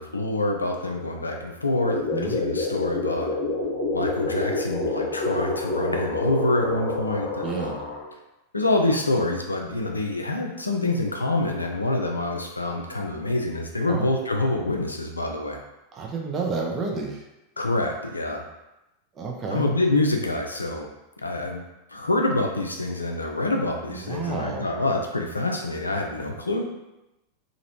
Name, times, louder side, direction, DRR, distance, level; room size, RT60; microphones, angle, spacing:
voice 1, 0.0-3.4 3.9-7.8 8.5-15.6 17.6-18.4 19.5-20.9 21.2-21.6 21.9-26.6, left 2 dB, 80° left, 2 dB, 0.4 m, -26 dB
sound 1, 1.8-8.0, left 2 dB, 45° left, 1.0 m, -27 dB
voice 2, 7.4-7.8 13.9-14.1 15.9-17.3 19.2-19.7 23.9-24.7, right 4 dB, 25° right, 0 dB, 0.6 m, -30 dB
2.9 x 2.5 x 2.9 m, 0.97 s
figure-of-eight pair, 90°, 0 cm